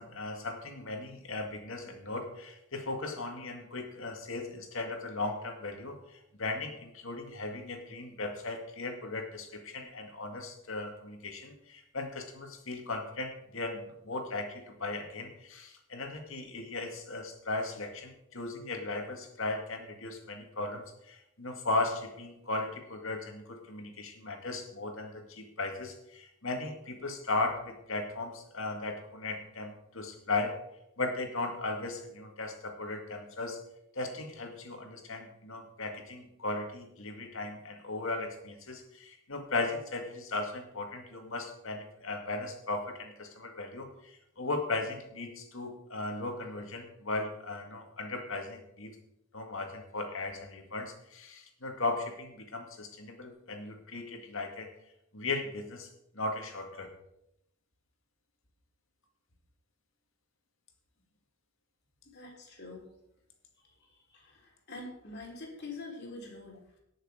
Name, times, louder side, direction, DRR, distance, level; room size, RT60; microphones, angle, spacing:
voice 1, 0.0-30.6 31.0-33.6 33.9-49.0 49.3-54.7 55.1-55.9 56.1-56.9, left 2 dB, 65° left, 3 dB, 2.2 m, -37 dB
voice 2, 62.1-62.9 63.6-66.6, left 2 dB, 50° left, 0 dB, 3.4 m, -45 dB
18.0 x 6.8 x 5.0 m, 0.81 s
head